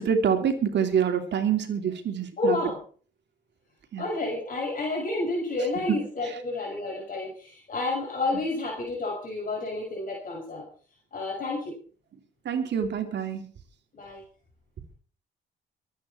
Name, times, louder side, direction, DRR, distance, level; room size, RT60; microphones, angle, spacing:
voice 1, 0.0-2.6 3.9-4.1 5.9-6.0 6.2-6.3 12.4-13.4, right 7 dB, 60° right, 6 dB, 3.1 m, -26 dB
voice 2, 2.4-2.8 4.0-10.6 11.1-11.8 13.9-14.2, left 2 dB, 45° left, -2 dB, 6.1 m, -30 dB
23.5 x 9.4 x 4.5 m, 0.42 s
cardioid pair, 90°, 20 cm